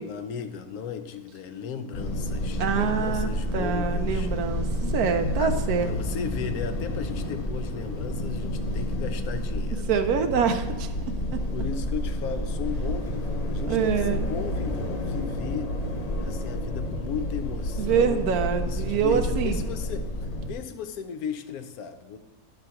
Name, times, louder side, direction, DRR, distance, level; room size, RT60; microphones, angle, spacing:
voice 1, 0.0-4.3 5.4-9.9 11.5-15.7 16.2-18.3 18.6-20.1 20.4-22.2, left 7 dB, 80° left, 8 dB, 1.2 m, -36 dB
sound 1, 1.9-20.5, left 1 dB, 50° left, 0.4 m, -30 dB
voice 2, 2.6-5.9 9.9-10.9 13.7-14.3 17.8-19.6, right 7 dB, 80° right, 7 dB, 1.2 m, -25 dB
10.5 x 3.8 x 5.7 m, 1.2 s
omnidirectional pair, 1.6 m